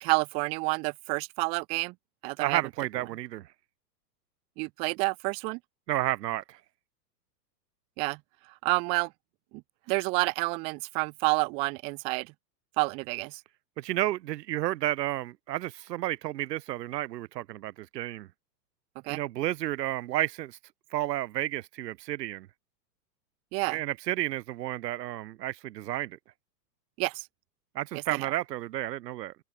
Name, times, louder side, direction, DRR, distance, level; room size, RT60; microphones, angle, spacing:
voice 1, 0.0-1.9 2.2-2.6 4.6-5.6 8.0-8.2 8.6-9.1 9.9-12.3 12.8-13.4 19.0-19.2 23.5-23.8 27.0-27.3, right 31 dB, 15° right, 0.5 m, -29 dB
voice 2, 2.4-3.5 5.9-6.6 13.8-18.3 19.1-20.6 20.9-22.5 23.7-26.2 27.7-29.3, right 15 dB, 75° right, 0.8 m, -31 dB
supercardioid pair, 160°, 50 cm